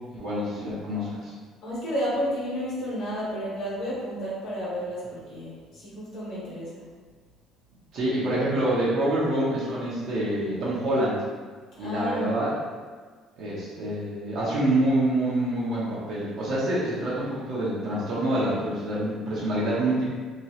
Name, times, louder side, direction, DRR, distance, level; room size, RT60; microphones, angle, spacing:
voice 1, 0.1-1.3 7.9-11.2 11.8-12.5 13.4-20.1, right 1 dB, 50° right, -8 dB, 0.8 m, -26 dB
voice 2, 1.6-6.8 11.8-12.5, equal, 50° left, -8 dB, 1.3 m, -31 dB
3.0 x 2.9 x 2.8 m, 1.5 s
cardioid pair, 165°, 0 cm